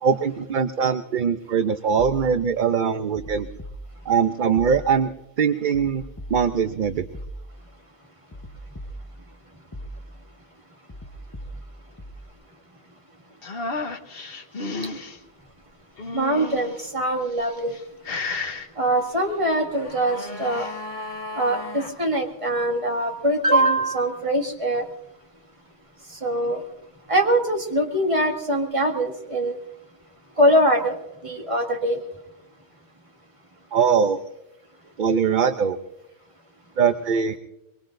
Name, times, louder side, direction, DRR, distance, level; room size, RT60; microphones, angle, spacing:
voice 1, 0.0-3.5 4.1-6.0 6.3-7.1 33.7-34.2 35.0-35.8 36.8-37.4, right 6 dB, 55° right, 9 dB, 0.8 m, -22 dB
sound 1, 3.1-4.2 4.6-5.2 5.7-7.8 8.3-9.4 9.7-10.3 10.9-12.3, right 1 dB, 20° left, 1.0 m, -40 dB
sound 2, 13.4-15.2 16.0-16.8 17.5-17.8 18.0-18.7 20.0-20.7, left 3 dB, 60° left, 1.4 m, -32 dB
voice 2, 16.1-17.7 18.8-20.7 21.4-24.9 26.2-26.6 27.1-29.6 30.4-31.0 31.2-32.0, right 1 dB, 30° right, 2 dB, 2.1 m, -22 dB
sound 3, 19.4-22.0 22.2-22.3, left 2 dB, 45° left, 2.6 m, -36 dB
23.5 x 22.5 x 2.6 m, 0.91 s
omnidirectional pair, 1.1 m